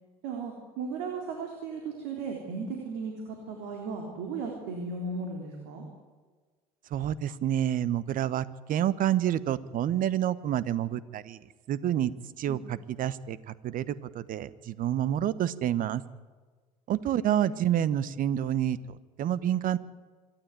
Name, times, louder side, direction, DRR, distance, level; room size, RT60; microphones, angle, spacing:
voice 1, 0.2-5.8 12.5-12.7 17.1-17.7, right 4 dB, 65° right, 2 dB, 3.8 m, -36 dB
voice 2, 6.9-11.4 11.7-12.1 12.4-16.0 16.9-18.8 19.2-19.8, right 11 dB, 50° right, 18 dB, 1.1 m, -28 dB
26.0 x 12.0 x 9.2 m, 1.4 s
hypercardioid pair, 65°, 19 cm